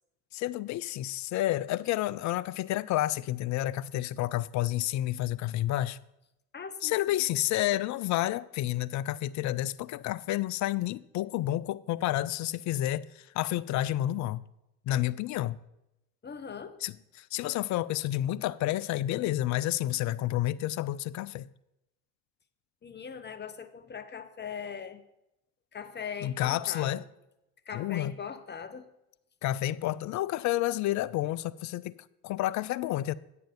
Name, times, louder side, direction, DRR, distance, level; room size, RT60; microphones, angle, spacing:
voice 1, 0.3-6.0 6.8-14.4 14.9-15.6 16.8-21.5 26.2-27.0 27.7-28.1 29.4-31.9 32.2-33.1, left 14 dB, 45° left, 0.4 m, -30 dB
voice 2, 6.5-7.2 16.2-16.8 22.8-25.0 25.7-27.0 27.7-28.9, left 6 dB, 25° left, 0.9 m, -40 dB
8.9 x 6.9 x 5.2 m
hypercardioid pair, 70°, 42 cm